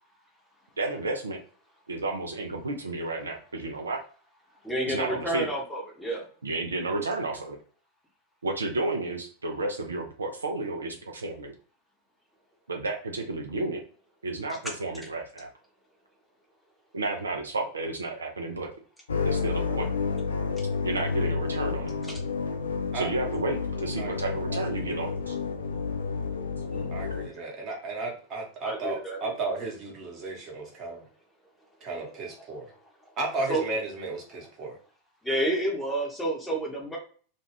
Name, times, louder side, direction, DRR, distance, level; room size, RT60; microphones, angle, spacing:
voice 1, 0.8-1.4 1.9-4.0 4.9-5.5 6.4-7.6 8.4-11.5 12.7-13.8 14.2-15.5 16.9-18.7 19.2-19.9 20.8-21.9 22.9-25.4, right 2 dB, 75° right, 2 dB, 0.4 m, -32 dB
voice 2, 4.6-6.2 26.7-27.0 28.6-29.2 33.5-33.6 35.2-37.0, right 1 dB, 5° left, -1 dB, 0.8 m, -29 dB
sound 1, 19.1-27.3, left 4 dB, 70° left, 0.4 m, -30 dB
voice 3, 24.0-24.6 26.9-31.0 31.8-32.7 33.2-34.8, right 3 dB, 35° right, -1 dB, 1.0 m, -34 dB
2.4 x 2.3 x 3.1 m, 0.42 s
figure-of-eight pair, 90°, 0 cm